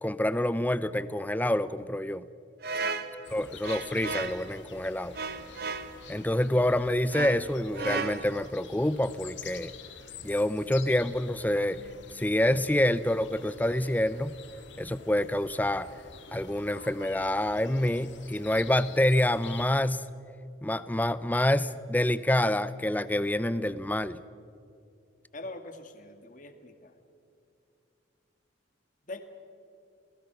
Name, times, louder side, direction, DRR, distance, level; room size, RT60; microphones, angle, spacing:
voice 1, 0.0-2.2 3.3-5.1 6.1-9.7 10.2-11.8 12.1-14.3 14.8-15.9 16.3-20.0 20.6-24.2, left 1 dB, 10° left, 15 dB, 0.5 m, -27 dB
sound 1, 2.6-4.5 5.1-6.0 7.1-8.5, right 4 dB, 55° right, 1.0 m, -35 dB
sound 2, 3.2-19.7, left 5 dB, 70° left, 1.8 m, -48 dB
voice 2, 25.3-26.9 29.1-29.2, left 2 dB, 40° left, 7 dB, 1.8 m, -43 dB
30.0 x 19.5 x 5.9 m, 2.7 s
head